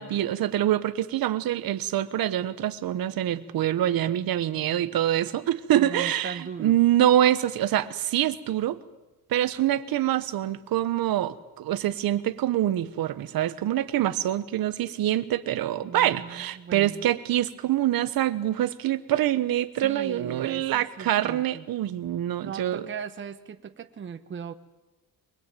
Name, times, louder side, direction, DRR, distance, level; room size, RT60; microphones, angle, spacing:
voice 1, 0.0-8.8 9.3-22.8, right 12 dB, 75° right, 12 dB, 1.3 m, -25 dB
voice 2, 5.7-6.8 15.8-17.1 19.8-21.7 22.4-24.5, right 7 dB, 35° right, 8 dB, 1.1 m, -39 dB
24.0 x 20.5 x 9.1 m, 1.0 s
cardioid pair, 170°, 36 cm